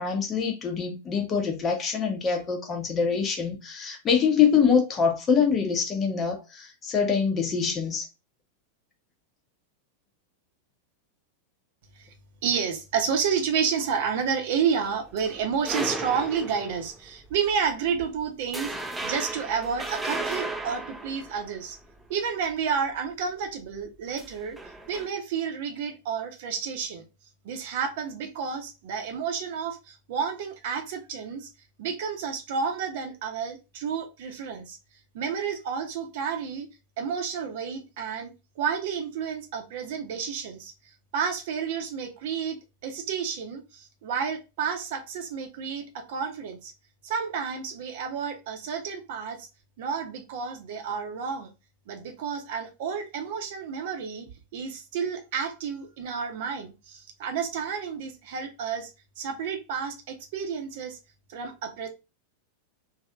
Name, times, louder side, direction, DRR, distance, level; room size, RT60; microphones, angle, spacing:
voice 1, 0.0-8.1, left 6 dB, 25° left, 0.8 m, -24 dB
voice 2, 12.4-18.7 19.0-21.8 22.1-24.6 24.9-27.0 27.4-31.5 31.8-34.8 35.1-36.7 37.0-40.7 41.1-42.6 42.8-46.7 47.0-49.5 49.8-51.5 51.9-58.9 59.2-61.0 61.3-61.9, right 6 dB, 50° right, 0.8 m, -30 dB
sound 1, 14.8-17.0 17.5-17.7 18.0-18.2 18.5-22.0 24.1-25.1, right 2 dB, 10° right, 0.4 m, -35 dB
3.2 x 2.7 x 2.4 m
figure-of-eight pair, 90°, 0 cm